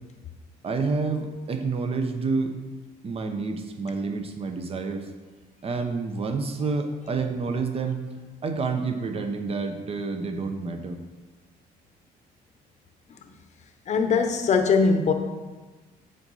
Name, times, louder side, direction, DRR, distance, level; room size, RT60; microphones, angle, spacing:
voice 1, 0.6-2.6 3.0-5.1 5.6-8.0 8.4-11.0, right 4 dB, 35° right, 6 dB, 0.8 m, -28 dB
voice 2, 13.9-15.1, left 5 dB, 45° left, 6 dB, 0.9 m, -21 dB
7.8 x 4.1 x 5.5 m, 1.3 s
cardioid pair, 110°, 17 cm